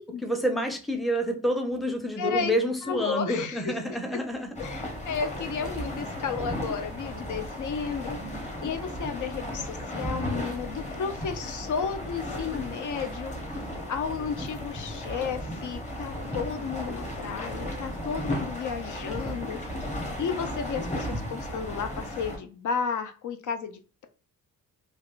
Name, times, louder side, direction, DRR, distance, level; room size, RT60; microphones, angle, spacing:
voice 1, 0.2-4.5, equal, ahead, 5 dB, 0.6 m, -28 dB
voice 2, 2.2-2.5 2.8-3.8 4.6-13.6 13.9-19.9 20.2-24.1, left 6 dB, 60° left, 8 dB, 0.5 m, -33 dB
sound 1, 4.5-22.4, equal, 20° left, 1.0 m, -35 dB
3.3 x 2.4 x 2.3 m, 0.38 s
cardioid pair, 85°, 35 cm